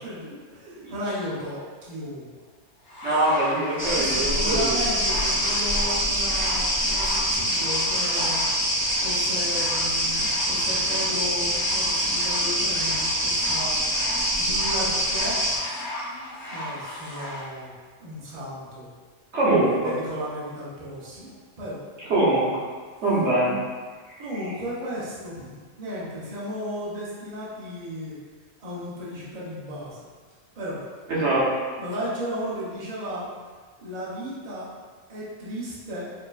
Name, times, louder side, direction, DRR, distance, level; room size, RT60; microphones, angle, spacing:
voice 1, 0.0-2.4 3.8-8.4 9.0-13.7 14.3-15.4 16.5-17.7 18.0-18.9 19.8-21.8 24.2-28.2 28.6-30.0 30.5-30.8 31.8-33.3 33.8-34.7 35.1-36.1, equal, 35° right, -8 dB, 0.9 m, -34 dB
sound 1, 2.9-17.5 18.3-18.4, left 1 dB, 65° left, 1.3 m, -36 dB
voice 2, 3.0-4.7 19.3-19.9 22.1-22.5 23.0-23.5 31.1-31.4, right 2 dB, 65° right, -8 dB, 1.3 m, -22 dB
sound 2, 3.8-15.6, equal, 15° left, 1.4 m, -25 dB
5.0 x 2.9 x 2.4 m, 1.5 s
omnidirectional pair, 1.3 m